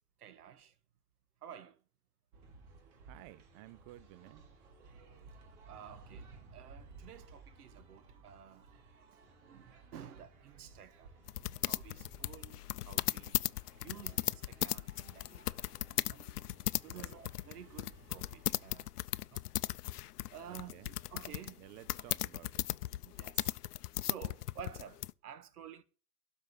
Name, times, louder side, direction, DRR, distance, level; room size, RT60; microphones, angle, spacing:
voice 1, 0.2-0.7 1.4-1.8 5.6-8.7 9.5-11.1 11.6-13.4 13.8-15.7 16.0-16.2 16.8-18.9 19.2-19.4 20.3-21.6 23.0-23.5 24.0-25.8, right 9 dB, 75° right, 1.6 m, -52 dB
sound 1, 2.3-18.9, right 4 dB, 55° right, 3.3 m, -58 dB
voice 2, 3.1-4.5 16.9-17.2 20.5-20.9 21.6-22.7, right 17 dB, 35° right, 0.5 m, -54 dB
sound 2, 11.3-25.1, left 15 dB, 80° left, 0.6 m, -37 dB
12.0 x 5.2 x 7.9 m
hypercardioid pair, 100°, 46 cm